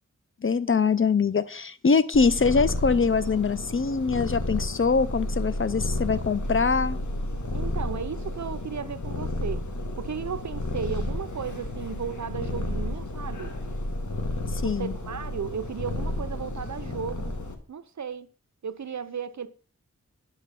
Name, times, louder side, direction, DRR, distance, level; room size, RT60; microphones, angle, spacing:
voice 1, 0.4-7.0 14.5-14.9, left 5 dB, 45° left, 0.6 m, -23 dB
Purr, 2.1-17.5, left 1 dB, 70° left, 1.5 m, -32 dB
voice 2, 7.5-9.6 10.0-13.5 14.6-17.4 17.7-18.3 18.6-19.5, right 7 dB, 65° right, 0.7 m, -35 dB
9.2 x 4.9 x 6.8 m
wide cardioid pair, 80°, 30 cm